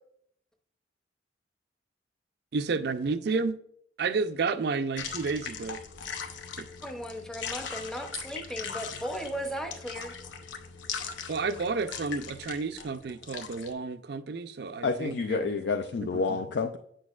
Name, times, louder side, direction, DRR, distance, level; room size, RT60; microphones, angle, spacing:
voice 1, 2.5-3.6 4.0-5.8 6.6-6.7 11.3-15.6, right 4 dB, 60° right, 0.4 m, -31 dB
sound 1, 5.0-13.7, left 6 dB, 85° left, 0.7 m, -40 dB
voice 2, 6.8-10.2, equal, 5° left, 0.6 m, -36 dB
voice 3, 14.8-16.8, left 4 dB, 60° left, 0.4 m, -29 dB
7.8 x 6.2 x 2.4 m
head